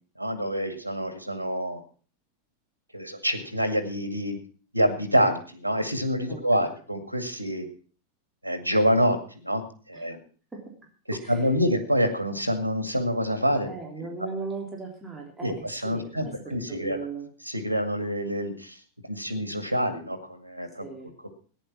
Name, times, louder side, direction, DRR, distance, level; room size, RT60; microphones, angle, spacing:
voice 1, 0.2-1.8 2.9-4.4 4.7-7.7 8.4-10.2 11.1-13.7 14.0-14.1 15.4-17.0 17.4-18.8 19.0-20.9, equal, 90° left, 10 dB, 2.1 m, -27 dB
voice 2, 6.3-6.7 10.0-10.1 10.5-10.6 11.1-11.4 13.7-17.3 20.8-21.1, right 4 dB, 10° right, -1 dB, 3.5 m, -38 dB
14.5 x 10.0 x 5.9 m, 0.40 s
figure-of-eight pair, 90°, 0 cm